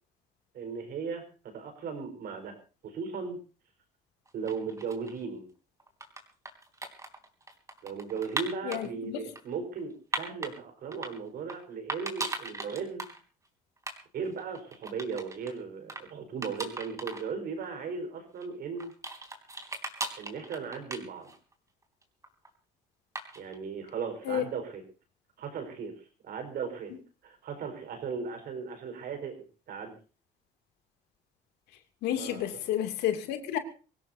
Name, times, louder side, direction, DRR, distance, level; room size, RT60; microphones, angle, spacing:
voice 1, 0.5-1.2 1.5-2.6 2.8-3.4 4.3-5.5 7.8-13.0 14.1-18.9 20.2-21.3 23.3-24.8 25.4-25.9 26.2-26.9 27.2-30.0 32.2-32.6, right 5 dB, 65° right, 5.0 m, -37 dB
sound 1, 4.3-5.2 5.8-8.8 9.4-10.5 10.9-11.6 11.9-13.2 13.4-13.5 13.8-14.0 14.2-15.5 15.9-16.0 16.4-17.2 17.6-17.7 18.4-21.5 21.8-22.5 23.2-23.6, right 2 dB, 20° right, 3.4 m, -38 dB
voice 2, 8.6-9.2 24.3-24.4 32.0-33.6, left 11 dB, 85° left, 2.7 m, -30 dB
24.5 x 16.5 x 2.8 m
cardioid pair, 110°, 17 cm